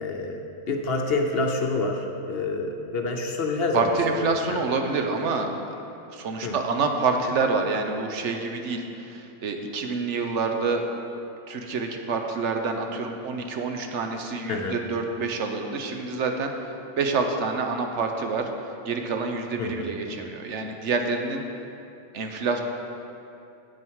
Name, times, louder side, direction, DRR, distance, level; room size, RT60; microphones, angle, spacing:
voice 1, 0.0-4.6 6.4-6.5 14.5-14.8 19.6-19.9, left 3 dB, 55° left, 2 dB, 0.9 m, -28 dB
voice 2, 3.7-5.6 6.1-10.9 11.5-18.5 18.8-21.4 22.1-22.6, right 4 dB, 70° right, 4 dB, 1.0 m, -27 dB
9.0 x 7.8 x 4.6 m, 2.8 s
omnidirectional pair, 1.3 m